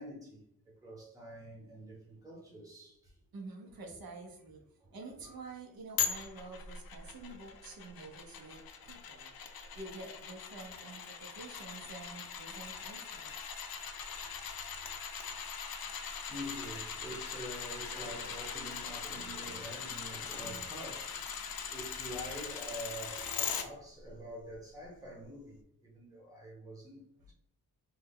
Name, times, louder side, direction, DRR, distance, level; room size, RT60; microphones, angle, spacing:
voice 1, 0.0-3.2 4.8-5.0 8.3-8.5 14.1-14.3 15.2-15.4 15.9-21.4 21.7-27.3, equal, 10° right, 1.0 m, -46 dB
voice 2, 3.3-4.6 4.9-9.3 9.7-13.3, right 3 dB, 75° right, 0.7 m, -48 dB
sound 1, 6.0-23.6 24.1-24.2, left 7 dB, 80° left, 0.5 m, -41 dB
3.2 x 2.2 x 3.5 m
wide cardioid pair, 175°, 36 cm